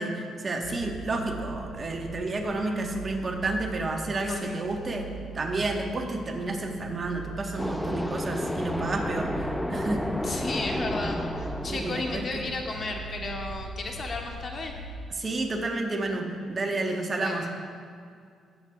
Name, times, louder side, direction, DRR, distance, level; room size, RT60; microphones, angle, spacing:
voice 1, 0.0-5.1 5.3-10.0 11.7-12.4 15.1-17.5, right 2 dB, 35° right, 2 dB, 1.3 m, -30 dB
sound 1, 0.6-15.0, right 3 dB, 80° left, 1.0 m, -41 dB
voice 2, 4.3-4.6 10.2-14.7 17.2-17.4, left 3 dB, 45° left, 2 dB, 1.1 m, -34 dB
sound 2, 7.6-13.3, left 1 dB, 5° left, 0.4 m, -32 dB
18.0 x 7.8 x 2.4 m, 2.3 s
cardioid pair, 90°, 0 cm